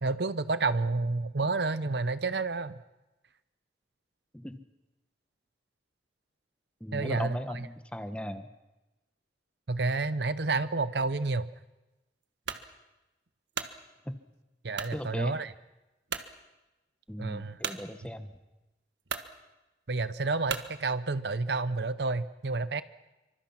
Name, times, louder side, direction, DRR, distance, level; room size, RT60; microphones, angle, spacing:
voice 1, 0.0-2.8 6.9-7.4 9.7-11.5 14.6-15.5 17.2-17.6 19.9-22.8, right 3 dB, 65° right, 14 dB, 0.8 m, -30 dB
voice 2, 6.8-8.5 14.0-14.2 14.9-15.4 17.1-18.3, equal, 5° left, 9 dB, 1.3 m, -37 dB
sound 1, 12.5-12.7 13.3-13.8 14.7-15.0 15.5-15.6 16.1-16.3 17.6-17.8 18.6-18.7 19.0-19.3 20.5-20.7, right 6 dB, 85° right, 1.5 m, -35 dB
26.5 x 25.0 x 5.9 m, 1.0 s
head